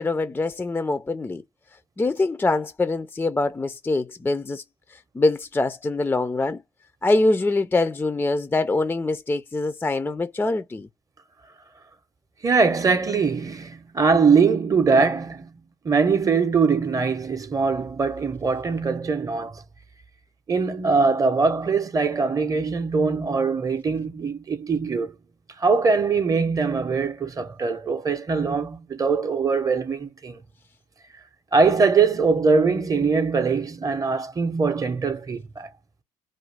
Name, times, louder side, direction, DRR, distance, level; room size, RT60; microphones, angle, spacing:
voice 1, 0.0-1.4 2.0-4.6 4.9-6.6 7.0-10.9, left 2 dB, 15° left, 0.3 m, -24 dB
voice 2, 12.4-15.5 15.8-19.6 20.5-25.2 25.6-30.4 31.5-35.7, right 4 dB, 30° right, 0.6 m, -22 dB
2.5 x 2.3 x 3.2 m
supercardioid pair, 75°, 12 cm